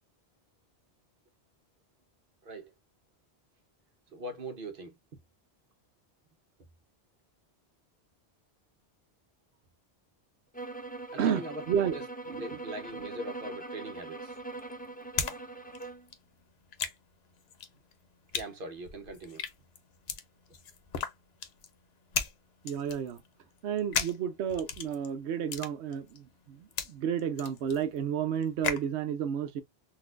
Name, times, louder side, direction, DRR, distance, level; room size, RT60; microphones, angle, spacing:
voice 1, 4.1-4.9 11.1-11.6 11.9-12.0 12.4-14.4 18.3-19.4, right 1 dB, 55° right, 1.1 m, -41 dB
sound 1, 10.5-16.1, right 2 dB, 10° left, 0.5 m, -42 dB
voice 2, 11.2-12.0 12.3-12.4 22.6-23.2 23.6-29.6, right 8 dB, 85° right, 0.9 m, -31 dB
sound 2, 13.9-15.4 15.6-28.9, left 7 dB, 70° left, 0.9 m, -37 dB
4.0 x 2.6 x 2.4 m
omnidirectional pair, 1.1 m